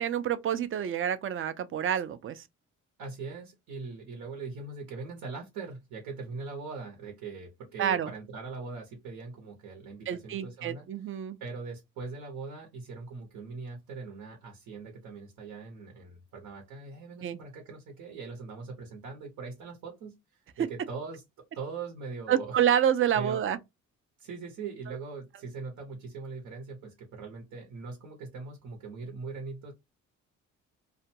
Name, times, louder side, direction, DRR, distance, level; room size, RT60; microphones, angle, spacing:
voice 1, 0.0-2.4 7.8-8.1 10.1-11.4 17.2-17.4 22.3-23.6, right 9 dB, 45° right, 0.5 m, -28 dB
voice 2, 3.0-10.9 11.4-21.2 21.5-22.6 23.1-23.4 24.2-29.7, right 4 dB, 90° right, 0.9 m, -41 dB
2.4 x 2.2 x 2.8 m
cardioid pair, 90°, 30 cm